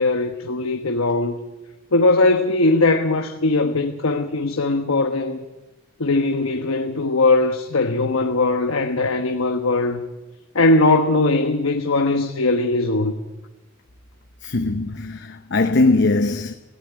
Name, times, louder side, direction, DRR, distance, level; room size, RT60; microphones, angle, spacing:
voice 1, 0.0-1.4 1.9-5.4 6.0-10.0 10.5-13.1, left 2 dB, 85° left, 1.1 m, -20 dB
voice 2, 14.4-16.5, left 2 dB, 60° left, 0.9 m, -20 dB
18.0 x 16.0 x 9.2 m
head